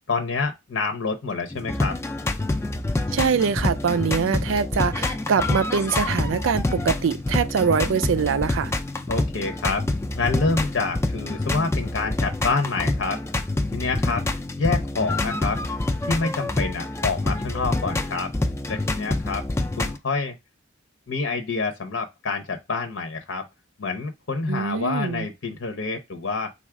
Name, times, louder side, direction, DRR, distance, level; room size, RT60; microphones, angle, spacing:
voice 1, 0.1-2.0 9.1-9.8 10.1-13.2 13.7-14.3 14.6-15.6 16.1-18.3 18.7-19.4 19.8-20.4 21.1-23.5 23.8-26.5, left 4 dB, 70° left, 0.7 m, -27 dB
sound 1, 1.5-20.0, left 2 dB, 15° left, 0.4 m, -27 dB
voice 2, 3.1-8.7 24.5-25.3, right 6 dB, 75° right, 0.4 m, -23 dB
4.0 x 2.4 x 4.6 m
head